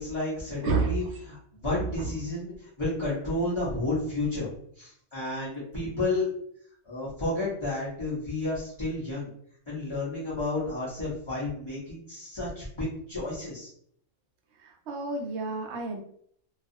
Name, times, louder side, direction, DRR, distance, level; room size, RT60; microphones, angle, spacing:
voice 1, 0.0-4.5 4.8-6.3 6.8-9.3 9.7-13.7, left 2 dB, 30° left, -9 dB, 0.7 m, -31 dB
voice 2, 0.6-1.0 1.7-2.1 14.6-16.0, right 4 dB, 65° right, 2 dB, 0.8 m, -30 dB
2.4 x 2.3 x 2.6 m, 0.65 s
omnidirectional pair, 1.4 m